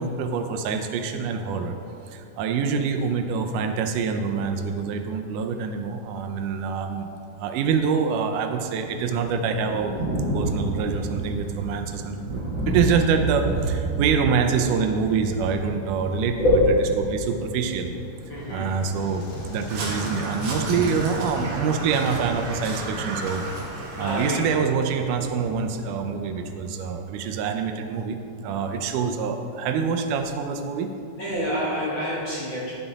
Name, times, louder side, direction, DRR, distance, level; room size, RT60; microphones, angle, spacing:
voice 1, 0.0-1.7 2.1-7.1 7.4-9.9 10.3-16.6 17.1-17.9 18.5-23.4 24.0-30.9, right 6 dB, 80° right, 5 dB, 2.1 m, -26 dB
Thunder, 8.8-26.7, right 2 dB, 30° right, 2.1 m, -33 dB
voice 2, 18.3-18.7 24.0-24.6 31.2-32.7, left 1 dB, 50° left, -7 dB, 1.6 m, -25 dB
sound 1, 18.4-23.6, equal, 80° left, 3.0 m, -35 dB
Crow, 19.7-24.7, right 2 dB, 55° right, 1.7 m, -34 dB
10.5 x 5.8 x 4.0 m, 2.6 s
omnidirectional pair, 3.7 m